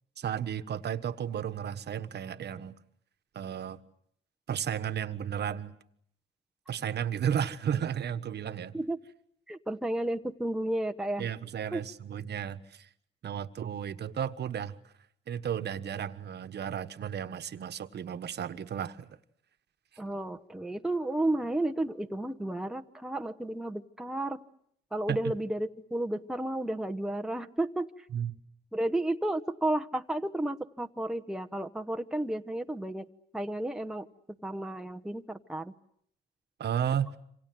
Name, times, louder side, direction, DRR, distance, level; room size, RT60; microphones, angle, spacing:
voice 1, 0.2-2.7 3.3-3.8 4.5-5.7 6.7-8.8 11.2-12.9 13.2-14.8 15.3-19.1 25.1-25.3 28.1-28.3 36.6-37.2, right 9 dB, 55° right, 1.4 m, -33 dB
voice 2, 9.5-11.3 11.7-11.8 20.0-24.4 24.9-28.1 28.7-33.1 33.3-34.1 34.4-35.7, right 1 dB, 5° right, 1.0 m, -32 dB
27.5 x 26.0 x 7.8 m
cardioid pair, 90°, 20 cm